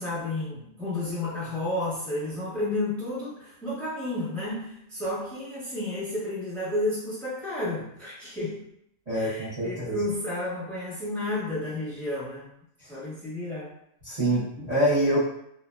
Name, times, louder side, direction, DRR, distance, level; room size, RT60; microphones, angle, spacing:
voice 1, 0.0-8.7 9.1-12.5 12.9-13.7 14.2-14.5, left 1 dB, ahead, -8 dB, 0.7 m, -32 dB
voice 2, 9.1-10.0 12.8-12.9 14.0-15.3, right 1 dB, 35° right, -11 dB, 0.8 m, -25 dB
2.8 x 2.1 x 2.3 m, 0.75 s
omnidirectional pair, 1.5 m